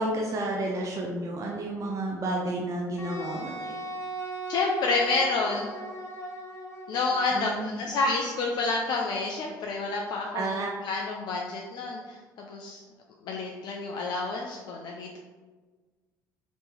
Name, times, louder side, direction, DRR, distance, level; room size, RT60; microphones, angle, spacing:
voice 1, 0.0-3.8 7.3-7.6 10.3-10.7, right 2 dB, 35° right, -1 dB, 0.6 m, -31 dB
Wind instrument woodwind instrument, 3.0-7.3, right 2 dB, 30° left, 0.8 m, -38 dB
voice 2, 4.5-5.7 6.9-10.6 10.8-12.8 13.2-15.2, left 3 dB, 50° left, 0 dB, 0.4 m, -29 dB
3.3 x 3.0 x 3.0 m, 1.3 s
figure-of-eight pair, 55°, 9 cm